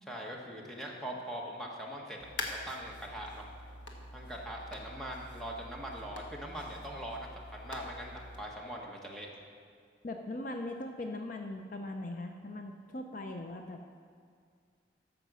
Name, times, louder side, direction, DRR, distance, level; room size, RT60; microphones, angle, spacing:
voice 1, 0.0-3.5 4.1-9.3, equal, ahead, -2 dB, 1.1 m, -42 dB
Typing click computer, 2.2-8.4, left 1 dB, 75° left, 1.3 m, -45 dB
voice 2, 10.0-13.8, left 1 dB, 45° left, 4 dB, 0.5 m, -40 dB
13.5 x 5.3 x 6.1 m, 2.2 s
head